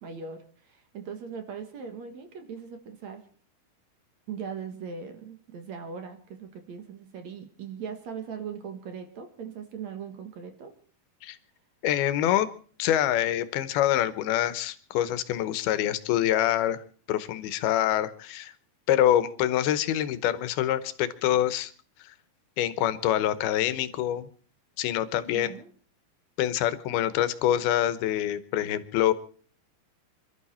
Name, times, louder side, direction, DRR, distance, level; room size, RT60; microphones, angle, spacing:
voice 1, 0.0-3.2 4.3-10.7 25.3-25.7, right 6 dB, 55° right, 6 dB, 2.6 m, -39 dB
voice 2, 11.8-12.5 12.8-16.8 17.1-18.5 18.9-21.7 22.6-24.3 24.8-25.5 26.4-29.1, left 12 dB, 90° left, 14 dB, 2.9 m, -25 dB
27.5 x 12.5 x 4.3 m, 0.44 s
omnidirectional pair, 4.3 m